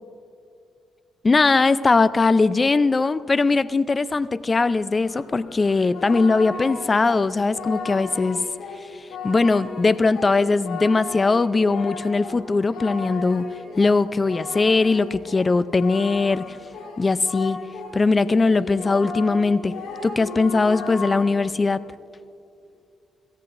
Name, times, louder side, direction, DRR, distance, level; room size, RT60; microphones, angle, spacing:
voice 1, 1.2-8.4 9.2-13.5 13.8-16.6 17.0-17.6 17.9-19.7 20.0-21.8, left 3 dB, 30° left, 15 dB, 0.5 m, -20 dB
Singing, 4.8-18.0 18.2-21.5, left 4 dB, 85° left, 3.3 m, -35 dB
23.0 x 16.5 x 2.6 m, 2.6 s
cardioid pair, 90°, 0 cm